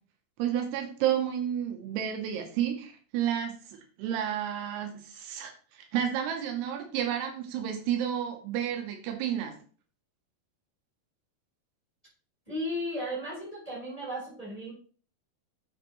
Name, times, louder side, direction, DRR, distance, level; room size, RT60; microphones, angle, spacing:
voice 1, 0.4-3.6 4.0-9.5, right 10 dB, 85° right, 4 dB, 3.1 m, -31 dB
voice 2, 12.5-14.7, equal, 10° left, -6 dB, 3.2 m, -35 dB
7.9 x 6.2 x 3.1 m, 0.41 s
omnidirectional pair, 4.6 m